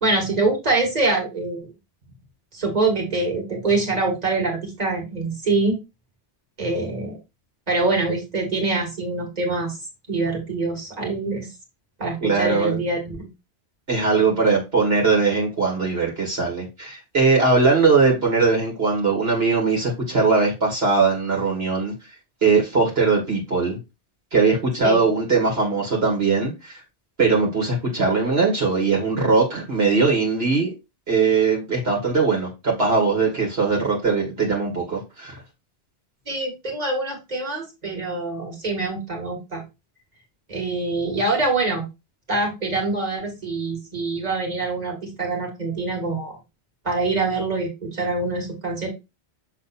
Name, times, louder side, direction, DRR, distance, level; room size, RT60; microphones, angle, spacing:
voice 1, 0.0-1.7 2.5-5.8 6.6-7.2 7.7-9.8 10.1-11.5 12.0-13.3 24.8-25.0 36.3-39.6 40.5-41.9 42.3-46.3 46.8-48.9, right 3 dB, 35° right, 2.2 m, -24 dB
voice 2, 12.2-12.8 13.9-21.9 22.4-23.8 24.3-26.8 27.2-30.7 31.1-35.4, right 4 dB, 60° right, 2.1 m, -20 dB
6.9 x 3.6 x 4.2 m
omnidirectional pair, 1.2 m